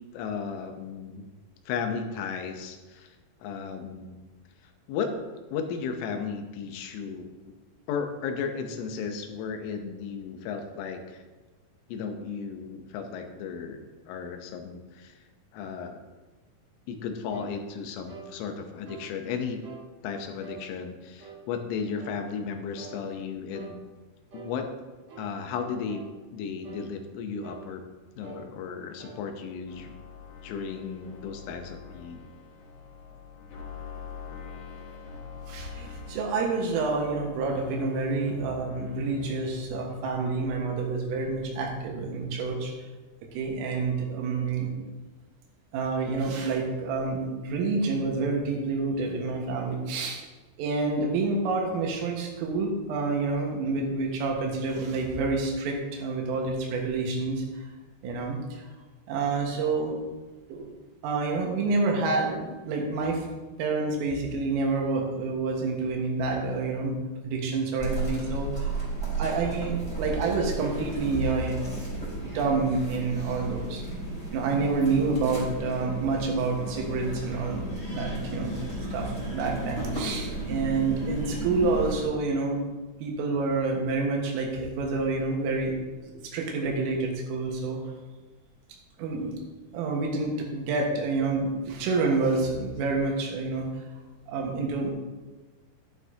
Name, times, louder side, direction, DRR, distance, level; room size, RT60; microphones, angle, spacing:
voice 1, 0.1-1.3 1.7-4.2 4.6-5.1 5.5-7.5 7.9-11.2 11.9-13.8 14.1-15.1 15.5-16.0 16.9-19.6 20.0-23.8 24.3-24.7 25.2-26.0 26.3-27.8 28.2-30.0 30.4-32.2, left 6 dB, 80° left, 5 dB, 3.4 m, -35 dB
sound 1, 17.3-17.5 18.1-18.3 18.9-19.1 19.6-19.9 20.4-20.6 21.2-21.4 22.0-22.2 22.8-23.0 23.5-23.8 24.3-24.5 25.1-25.3 25.9-26.1 26.6-26.9 27.4-27.7 28.2-28.4 29.0-29.2, right 6 dB, 65° right, 1.3 m, -46 dB
sound 2, 29.7-39.7, left 5 dB, 55° left, 3.1 m, -42 dB
voice 2, 35.5-42.7 43.3-44.9 45.7-50.3 50.6-57.7 58.0-58.7 59.1-60.0 60.5-60.7 61.0-63.3 63.6-71.6 71.9-73.8 74.3-77.6 77.9-78.6 78.9-82.7 83.0-85.8 86.0-87.8 89.0-89.3 89.7-93.7 94.3-94.9, right 3 dB, 85° right, 0 dB, 4.2 m, -28 dB
sound 3, 67.8-82.1, right 2 dB, 10° left, 2.4 m, -34 dB
11.5 x 11.5 x 2.9 m, 1.2 s
omnidirectional pair, 5.7 m